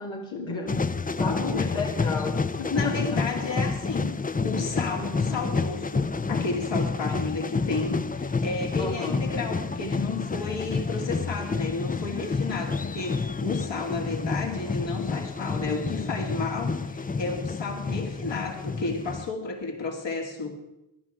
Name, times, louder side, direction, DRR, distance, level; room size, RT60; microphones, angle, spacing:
voice 1, 0.0-3.2 5.3-5.5 8.8-9.3 14.6-14.7, left 3 dB, 85° left, -3 dB, 2.2 m, -33 dB
sound 1, 0.7-19.3, left 4 dB, 20° left, 0.5 m, -29 dB
voice 2, 1.2-1.7 2.7-4.2 4.4-20.5, left 3 dB, 65° left, 2 dB, 2.6 m, -32 dB
17.5 x 11.0 x 4.9 m, 0.92 s
cardioid pair, 45°, 47 cm